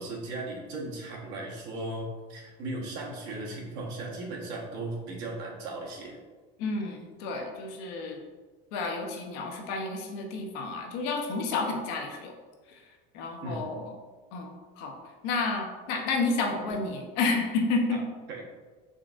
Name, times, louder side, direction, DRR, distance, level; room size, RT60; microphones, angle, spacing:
voice 1, 0.0-6.2 13.4-13.6 17.9-18.0 18.3-18.6, right 2 dB, 60° right, -2 dB, 1.0 m, -37 dB
voice 2, 6.6-8.2 8.7-12.3 12.7-12.8 13.1-13.9 14.3-15.0 15.2-18.0, left 3 dB, 70° left, 3 dB, 0.7 m, -30 dB
3.8 x 3.5 x 2.5 m, 1.4 s
cardioid pair, 145°, 20 cm